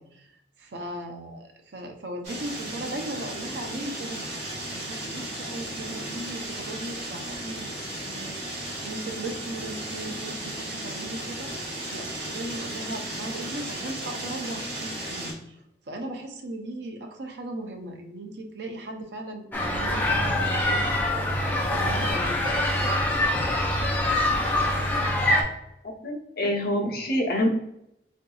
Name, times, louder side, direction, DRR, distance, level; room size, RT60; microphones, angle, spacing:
voice 1, 0.0-15.6 15.9-21.2 21.6-22.4, right 1 dB, 70° right, 4 dB, 0.6 m, -38 dB
sound 1, 2.2-15.3, right 1 dB, 40° right, 1.3 m, -35 dB
sound 2, 19.5-25.4, left 1 dB, 10° left, 0.5 m, -24 dB
voice 2, 25.8-27.5, left 1 dB, 60° left, 0 dB, 0.7 m, -26 dB
3.7 x 2.6 x 2.3 m, 0.81 s
head